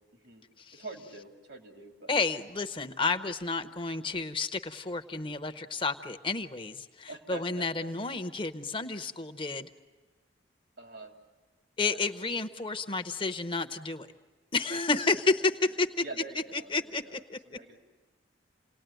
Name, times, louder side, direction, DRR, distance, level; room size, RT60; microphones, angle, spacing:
voice 1, 0.1-0.4 0.7-2.1 7.1-7.9 10.8-11.1 11.8-12.4 14.7-14.8 16.0-17.8, right 3 dB, 85° right, 2 dB, 3.5 m, -45 dB
voice 2, 2.1-9.7 11.8-14.1 14.5-15.5 15.8-15.9 16.5-17.6, left 3 dB, 25° left, 9 dB, 0.8 m, -31 dB
29.0 x 19.0 x 9.1 m, 1.3 s
head